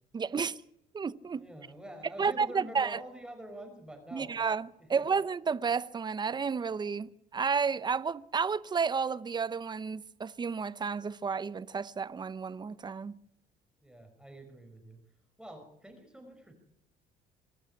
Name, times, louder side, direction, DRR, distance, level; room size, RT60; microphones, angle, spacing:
voice 1, 0.1-0.6 0.9-1.5 2.2-3.0 4.1-13.2, right 5 dB, 25° right, 0.8 m, -31 dB
voice 2, 1.4-4.3 4.8-5.2 13.8-15.0 15.4-16.5, right 1 dB, 5° right, 5.4 m, -46 dB
26.0 x 12.0 x 9.6 m
cardioid pair, 110°, 17 cm